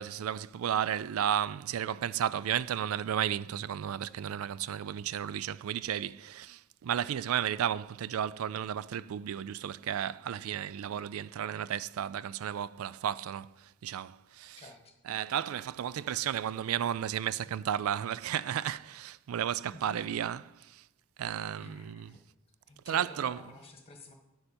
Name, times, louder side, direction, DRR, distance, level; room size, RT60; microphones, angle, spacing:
voice 1, 0.0-14.6 15.1-20.9 21.2-22.1 22.9-23.4, right 9 dB, 75° right, 0.3 m, -33 dB
voice 2, 14.6-15.0 19.7-20.2 21.6-22.2 22.7-24.1, left 2 dB, 30° left, 1.5 m, -50 dB
9.8 x 7.9 x 4.3 m
head